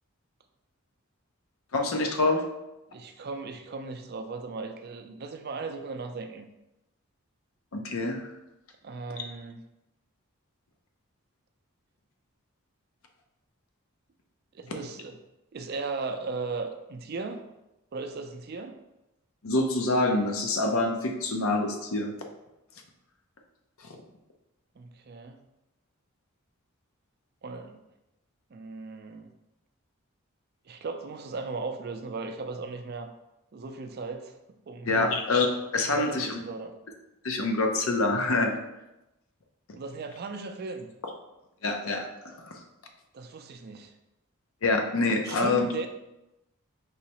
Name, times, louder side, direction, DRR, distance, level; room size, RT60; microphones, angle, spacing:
voice 1, 1.7-2.4 7.7-8.2 19.4-22.1 34.9-36.4 37.2-38.5 41.6-42.6 44.6-45.7, left 2 dB, 75° left, 3 dB, 0.6 m, -26 dB
voice 2, 2.9-6.5 8.8-9.6 14.5-15.2 15.5-17.4 17.9-18.7 24.8-25.4 27.4-27.8 28.5-29.3 30.7-33.1 33.5-34.4 34.7-35.2 35.8-36.7 39.7-40.9 43.1-43.9 45.2-45.9, right 4 dB, 50° right, 6 dB, 0.4 m, -37 dB
4.8 x 3.1 x 2.9 m, 0.93 s
head